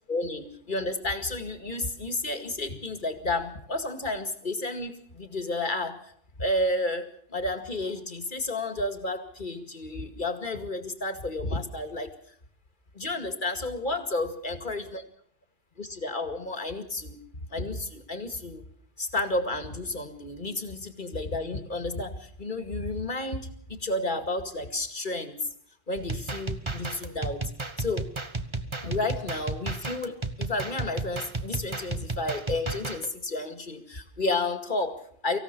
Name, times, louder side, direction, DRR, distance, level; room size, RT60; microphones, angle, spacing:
voice 1, 0.1-6.1 6.4-12.4 12.9-15.0 15.8-17.2 17.5-18.6 19.0-25.5 25.9-27.5 27.8-28.1 28.8-35.4, left 2 dB, 40° left, 8 dB, 2.2 m, -31 dB
sound 1, 26.0-33.1, right 3 dB, 25° right, 1.2 m, -33 dB
25.0 x 16.0 x 6.8 m, 0.64 s
omnidirectional pair, 1.2 m